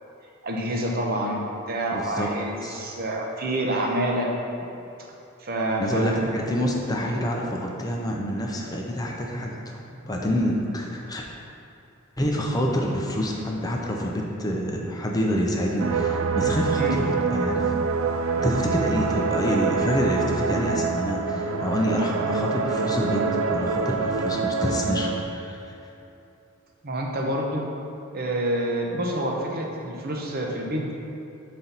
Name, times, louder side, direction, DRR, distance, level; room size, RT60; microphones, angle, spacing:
voice 1, 0.4-4.3 5.4-6.2 16.8-17.0 26.8-27.6 28.1-30.9, right 1 dB, 45° right, 0 dB, 0.8 m, -27 dB
voice 2, 1.9-2.3 2.6-2.9 5.8-11.3 12.2-17.7 18.4-25.7, equal, 20° left, -1 dB, 0.6 m, -27 dB
sound 1, 15.8-25.2, right 4 dB, 75° right, 0.4 m, -25 dB
7.5 x 4.2 x 4.0 m, 2.8 s
head